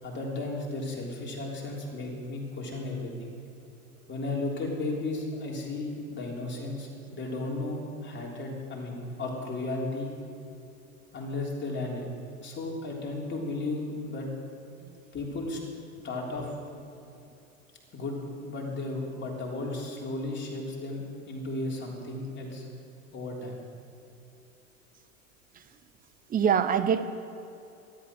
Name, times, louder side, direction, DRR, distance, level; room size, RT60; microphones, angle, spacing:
voice 1, 0.0-3.3 4.1-10.1 11.1-12.1 12.4-14.3 15.1-15.6 16.0-16.5 17.9-22.7 23.1-23.6, left 2 dB, 25° left, -2 dB, 3.6 m, -34 dB
voice 2, 26.3-27.0, right 8 dB, 20° right, 12 dB, 0.7 m, -24 dB
13.0 x 11.5 x 6.2 m, 2.7 s
hypercardioid pair, 105°, 42 cm